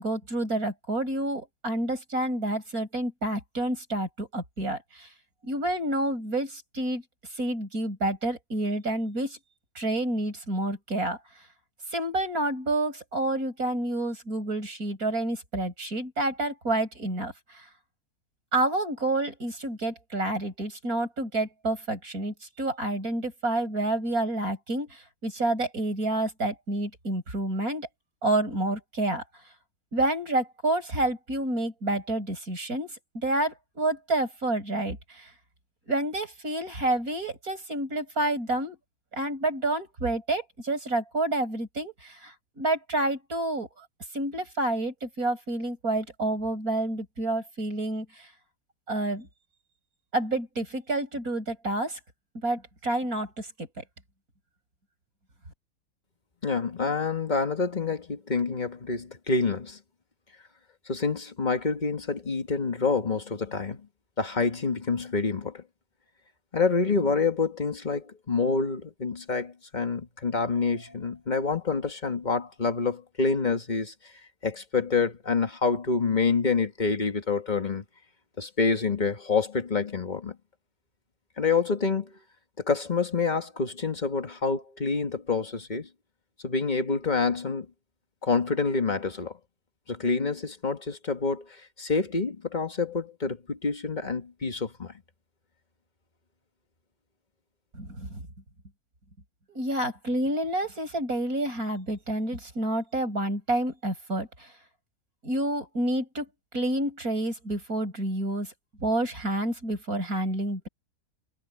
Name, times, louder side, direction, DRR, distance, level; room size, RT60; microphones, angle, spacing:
voice 1, 0.0-5.1 5.4-7.0 7.3-9.4 9.8-11.2 11.9-17.7 18.5-27.9 28.2-29.2 29.9-35.3 35.9-38.8 39.1-43.9 44.1-48.3 48.9-49.3 50.1-52.0 52.4-53.8 97.7-98.2 99.5-104.5 105.2-106.3 106.5-108.5 108.8-110.7, right 1 dB, 70° right, 8.6 m, -29 dB
voice 2, 56.4-59.8 60.9-63.8 64.2-65.6 66.5-73.9 74.4-77.8 78.4-80.4 81.4-82.2 82.6-85.9 86.4-87.7 88.2-89.3 89.9-94.9, left 4 dB, 30° left, 1.7 m, -27 dB
omnidirectional pair, 1.6 m